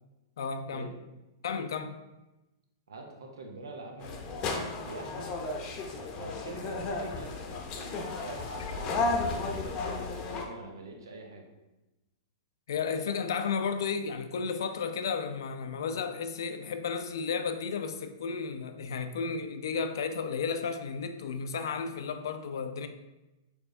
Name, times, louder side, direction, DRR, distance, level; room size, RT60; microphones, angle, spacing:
voice 1, 0.4-0.9 1.4-2.0 12.7-22.9, left 5 dB, 75° left, 8 dB, 0.4 m, -33 dB
voice 2, 2.9-5.3 6.1-7.4 8.2-11.5, right 3 dB, 90° right, 2 dB, 0.8 m, -44 dB
sound 1, 4.0-10.4, left 3 dB, 35° left, 0.7 m, -34 dB
4.6 x 3.3 x 2.6 m, 1.0 s
hypercardioid pair, 125°, 2 cm